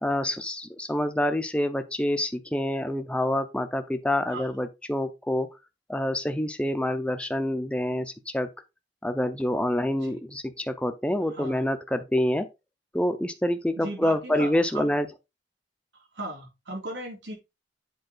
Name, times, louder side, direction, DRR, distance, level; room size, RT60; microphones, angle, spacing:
voice 1, 0.0-5.5 5.9-8.5 9.0-12.5 12.9-15.1, left 1 dB, 5° left, 0.7 m, -27 dB
voice 2, 11.3-11.6 13.8-14.9 16.1-17.3, right 1 dB, 80° right, 4.0 m, -37 dB
8.0 x 4.8 x 4.0 m
head